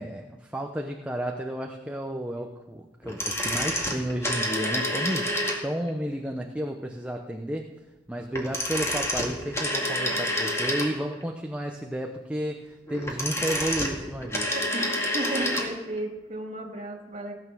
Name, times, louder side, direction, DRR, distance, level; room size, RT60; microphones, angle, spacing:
voice 1, 0.0-7.7 8.1-14.6, right 1 dB, 5° right, 2 dB, 0.8 m, -32 dB
sound 1, 3.0-5.9 8.3-11.2 12.9-15.7 16.0-16.1, left 1 dB, 15° left, 2.2 m, -28 dB
voice 2, 14.5-17.3, right 1 dB, 45° right, 1 dB, 2.5 m, -34 dB
17.5 x 9.2 x 6.2 m, 1.0 s
head